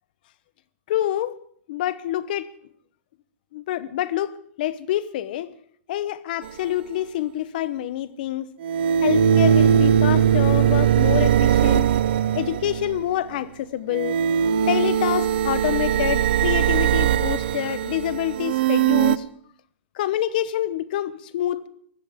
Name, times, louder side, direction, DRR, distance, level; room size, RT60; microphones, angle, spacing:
voice 1, 0.9-1.4 1.7-2.5 3.5-5.5 5.9-8.5 9.0-11.9 12.3-14.2 14.6-19.2 20.0-21.7, left 12 dB, 45° left, 0.8 m, -27 dB
sound 1, 6.4-6.5 8.6-13.1 13.9-19.2, right 9 dB, 50° right, 0.5 m, -20 dB
23.0 x 16.0 x 3.6 m
supercardioid pair, 175°, 7 cm